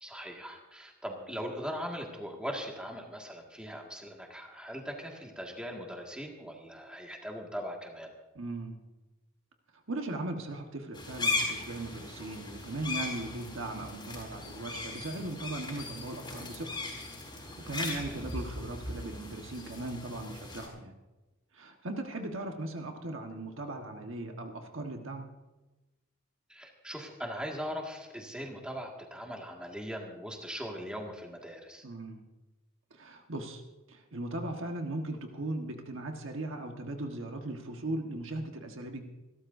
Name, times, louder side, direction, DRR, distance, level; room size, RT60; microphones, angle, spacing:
voice 1, 0.0-8.1 17.8-18.2 26.5-31.8, equal, 5° right, 0 dB, 1.9 m, -40 dB
voice 2, 8.3-8.8 9.9-16.8 17.4-20.9 21.5-25.3 31.8-32.2 32.9-33.6 33.9-39.1, right 2 dB, 65° right, 3 dB, 1.4 m, -38 dB
sound 1, 10.9-20.7, left 3 dB, 20° left, 4.3 m, -38 dB
28.0 x 13.0 x 2.7 m, 1.1 s
head